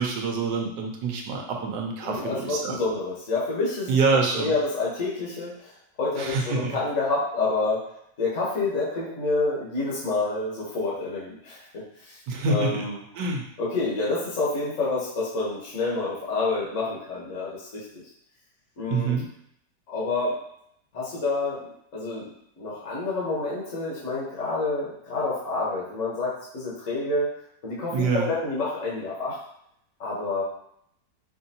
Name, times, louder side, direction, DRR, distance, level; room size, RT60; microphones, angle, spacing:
voice 1, 0.0-2.8 3.9-4.5 6.2-6.7 12.3-12.9 13.1-13.4 18.9-19.2 27.9-28.3, right 4 dB, 85° right, 1 dB, 1.3 m, -26 dB
voice 2, 2.0-4.0 4.3-5.7 6.0-7.8 8.2-11.6 12.0-12.2 12.5-13.0 13.6-18.0 18.8-19.2 19.9-20.4 20.9-21.7 21.9-27.3 27.6-29.4 30.0-30.4, left 3 dB, 55° left, -7 dB, 1.4 m, -28 dB
5.0 x 2.7 x 2.7 m, 0.72 s
omnidirectional pair, 1.8 m